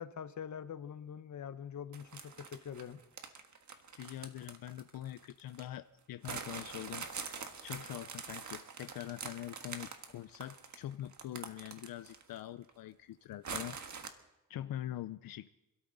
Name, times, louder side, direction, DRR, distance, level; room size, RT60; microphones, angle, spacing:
voice 1, 0.0-3.0, left 8 dB, 55° left, 11 dB, 0.9 m, -44 dB
sound 1, 1.9-5.7 6.2-12.4 12.7-12.8 13.4-14.1, right 5 dB, 55° right, 1.6 m, -45 dB
voice 2, 3.7-14.1 14.5-15.5, left 13 dB, 85° left, 12 dB, 0.5 m, -44 dB
27.0 x 13.0 x 4.0 m, 0.96 s
cardioid pair, 105°, 34 cm